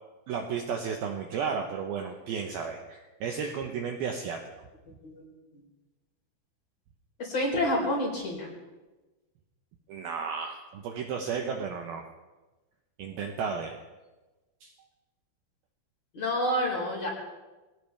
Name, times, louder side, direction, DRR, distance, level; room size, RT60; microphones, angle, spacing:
voice 1, 0.3-4.4 9.9-12.0 13.0-13.8 14.6-14.7, right 6 dB, 80° right, 3 dB, 2.2 m, -33 dB
voice 2, 7.2-8.5 16.1-17.1, left 1 dB, 35° left, -1 dB, 4.9 m, -28 dB
22.5 x 18.5 x 3.4 m, 1.2 s
omnidirectional pair, 5.7 m